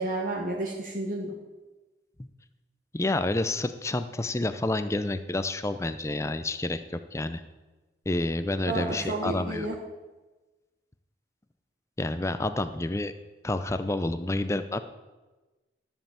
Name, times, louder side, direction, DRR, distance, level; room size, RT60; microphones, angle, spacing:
voice 1, 0.0-1.3 8.7-9.7, right 2 dB, 50° right, -2 dB, 1.3 m, -31 dB
voice 2, 2.9-7.4 8.1-9.7 12.0-13.1 13.4-14.8, left 2 dB, 15° left, 10 dB, 0.5 m, -29 dB
13.0 x 5.5 x 7.3 m, 1.2 s
head